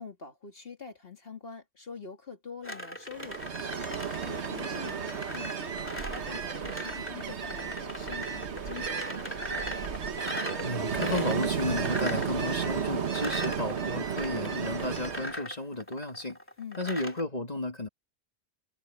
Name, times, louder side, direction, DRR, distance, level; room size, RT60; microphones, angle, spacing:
voice 1, 0.0-9.7 16.6-16.9, left 5 dB, 60° left, 2.7 m, -45 dB
sound 1, 2.6-17.2, equal, 10° left, 2.6 m, -40 dB
Ocean, 3.2-15.3, right 6 dB, 90° right, 1.6 m, -33 dB
voice 2, 10.6-16.4 16.8-17.9, left 2 dB, 40° left, 2.7 m, -33 dB
omnidirectional pair, 1.1 m